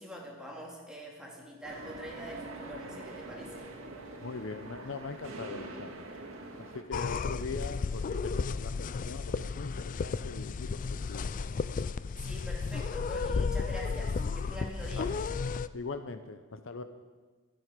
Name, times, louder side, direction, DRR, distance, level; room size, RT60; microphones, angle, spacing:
voice 1, 0.0-3.7 12.2-15.1, equal, 5° right, -3 dB, 2.9 m, -44 dB
sound 1, 1.6-6.8, right 2 dB, 80° right, 2.2 m, -44 dB
voice 2, 4.2-6.1 6.6-10.8 11.1-11.5 14.9-15.1 15.7-16.8, left 4 dB, 65° left, 9 dB, 0.7 m, -41 dB
sound 2, 6.9-15.7, left 4 dB, 40° left, 0.3 m, -33 dB
23.5 x 7.8 x 5.2 m, 1.4 s
head